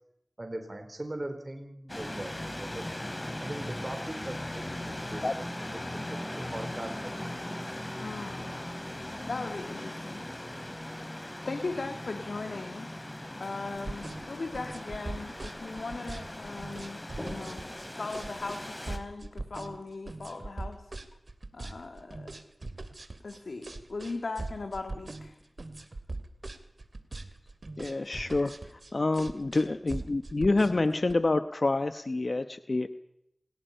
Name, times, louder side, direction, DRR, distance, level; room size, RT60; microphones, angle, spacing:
voice 1, 0.4-2.8 3.4-5.3 5.6-7.4, right 1 dB, 35° right, 5 dB, 3.9 m, -40 dB
sound 1, 1.9-19.0, left 1 dB, 25° left, 3.7 m, -39 dB
voice 2, 8.0-8.5 8.9-10.2 11.4-12.9 13.4-17.7 18.0-20.8 21.5-22.3 23.2-25.4, left 3 dB, 85° left, 5 dB, 2.2 m, -38 dB
sound 2, 13.7-31.1, right 2 dB, 60° right, 2.6 m, -41 dB
voice 3, 27.8-28.5 28.9-32.9, left 2 dB, 60° left, 10 dB, 0.9 m, -27 dB
27.0 x 21.0 x 5.6 m, 0.78 s
cardioid pair, 40°, 0 cm